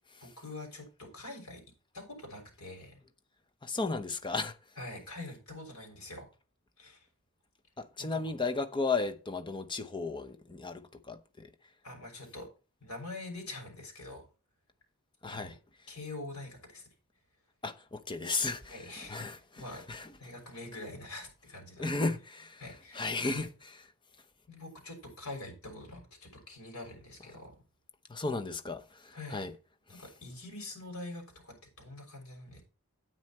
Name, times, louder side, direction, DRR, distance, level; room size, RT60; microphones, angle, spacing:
voice 1, 0.2-1.6 1.9-3.0 4.8-6.3 6.8-7.1 8.0-8.3 11.8-12.5 12.8-14.2 15.3-15.5 15.9-16.9 18.7-19.2 19.6-19.8 20.2-22.0 22.6-23.5 24.5-27.5 29.1-29.4 29.9-32.6, left 2 dB, 80° left, 6.3 m, -45 dB
voice 2, 3.6-4.5 7.8-11.5 15.2-15.6 17.6-20.1 21.8-22.7 22.9-23.8 28.1-29.6, left 3 dB, 20° left, 0.9 m, -35 dB
9.6 x 9.0 x 4.3 m
head